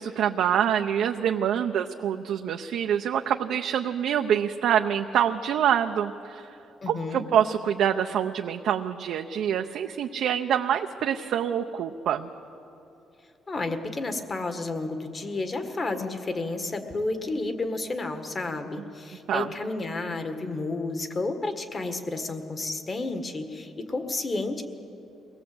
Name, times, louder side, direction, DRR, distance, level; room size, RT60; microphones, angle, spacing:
voice 1, 0.0-6.5 6.9-12.3 19.3-19.5, right 9 dB, 75° right, 4 dB, 0.7 m, -26 dB
voice 2, 6.8-7.3 13.5-24.6, left 2 dB, 30° left, 7 dB, 1.7 m, -31 dB
23.5 x 18.5 x 7.9 m, 2.8 s
cardioid pair, 120°, 0 cm